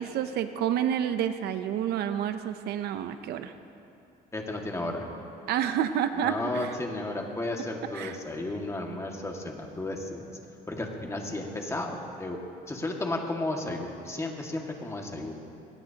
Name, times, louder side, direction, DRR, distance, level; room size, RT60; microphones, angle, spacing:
voice 1, 0.0-3.5 5.5-6.7 7.9-8.2, right 9 dB, 75° right, 10 dB, 0.7 m, -29 dB
voice 2, 4.3-5.1 6.2-10.3 10.7-12.4 12.7-15.4, left 2 dB, 15° left, 1 dB, 1.9 m, -33 dB
21.0 x 18.0 x 2.9 m, 2.6 s
cardioid pair, 110°, 17 cm